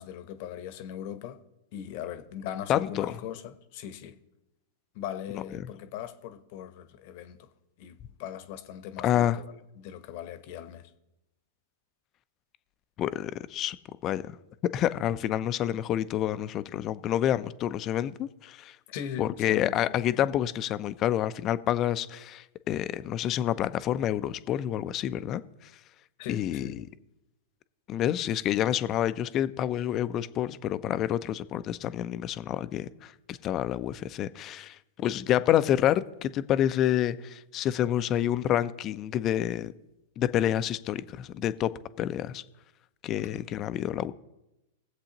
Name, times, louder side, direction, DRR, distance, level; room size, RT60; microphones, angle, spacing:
voice 1, 0.0-1.4 1.7-4.2 4.9-7.5 7.8-9.4 9.7-10.9 18.9-20.3 26.2-26.9, left 10 dB, 55° left, 1.0 m, -40 dB
voice 2, 2.7-3.1 5.5-5.6 9.0-9.4 13.0-13.8 14.0-14.3 14.7-18.8 19.2-25.4 26.3-26.7 27.9-39.7 40.2-41.7 42.0-42.4 43.0-44.1, left 11 dB, 35° left, 0.5 m, -28 dB
20.5 x 7.7 x 3.0 m
hypercardioid pair, 110°, 0 cm